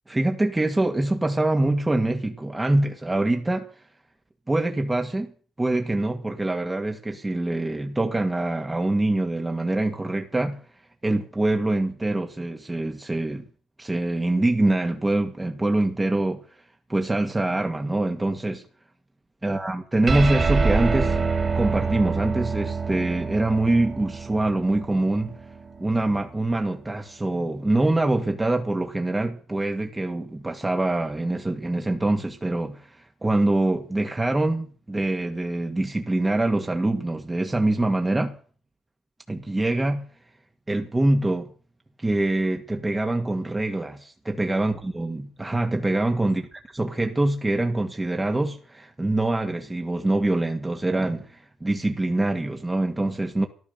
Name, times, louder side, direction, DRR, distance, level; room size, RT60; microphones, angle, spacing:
voice 1, 0.1-3.7 4.5-5.3 5.6-10.6 11.0-13.4 13.8-16.4 16.9-18.6 19.4-21.2 21.6-25.3 25.8-38.3 39.3-40.1 40.7-41.5 42.0-46.4 46.7-53.5, right 2 dB, 15° right, 2.2 m, -24 dB
sound 1, 20.1-26.8, right 4 dB, 40° right, 4.3 m, -27 dB
14.5 x 12.0 x 7.0 m
supercardioid pair, 65°, 0 cm